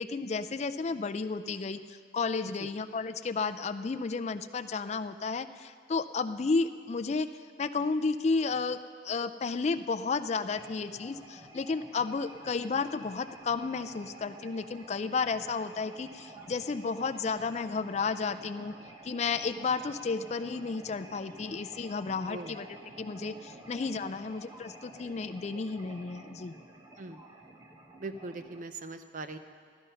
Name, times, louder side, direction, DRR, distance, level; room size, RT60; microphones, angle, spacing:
voice 1, 0.0-7.3 7.6-8.8 9.0-18.7 19.0-26.5, left 4 dB, 35° left, 10 dB, 0.4 m, -32 dB
sound 1, 10.5-28.6, right 1 dB, 20° right, 1.0 m, -50 dB
voice 2, 28.0-29.4, right 3 dB, 45° right, 8 dB, 0.7 m, -40 dB
15.5 x 12.5 x 5.6 m, 2.1 s
head